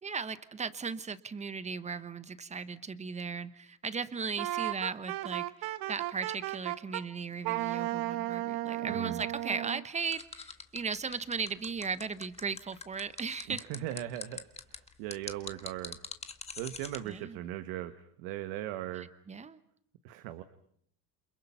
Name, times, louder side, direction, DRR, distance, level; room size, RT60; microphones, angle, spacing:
voice 1, 0.0-13.7 17.0-17.4 19.3-19.6, right 5 dB, 15° right, 14 dB, 1.1 m, -37 dB
Wind instrument woodwind instrument, 4.4-7.0 7.4-9.8, right 16 dB, 55° right, 1.1 m, -34 dB
voice 2, 8.8-9.2 13.5-14.4 14.7-16.0 16.6-19.1 20.0-20.4, right 13 dB, 70° right, 10 dB, 1.5 m, -39 dB
sound 1, 10.1-17.0, left 4 dB, 15° left, 1.5 m, -43 dB
29.0 x 27.5 x 5.7 m, 0.65 s
cardioid pair, 140°, 43 cm